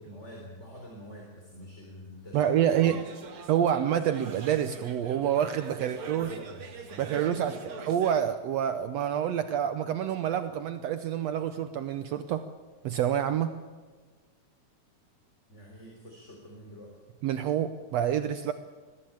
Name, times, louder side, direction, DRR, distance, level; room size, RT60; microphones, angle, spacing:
voice 1, 0.0-3.0 5.8-7.9 15.5-16.9, left 1 dB, 20° left, 0 dB, 3.9 m, -46 dB
voice 2, 2.3-3.0 3.5-6.3 7.0-12.5 12.8-13.5 17.2-18.5, right 10 dB, 70° right, 9 dB, 1.8 m, -27 dB
sound 1, 2.7-8.2, right 4 dB, 50° right, 2.5 m, -44 dB
22.0 x 14.5 x 8.7 m, 1.4 s
omnidirectional pair, 3.4 m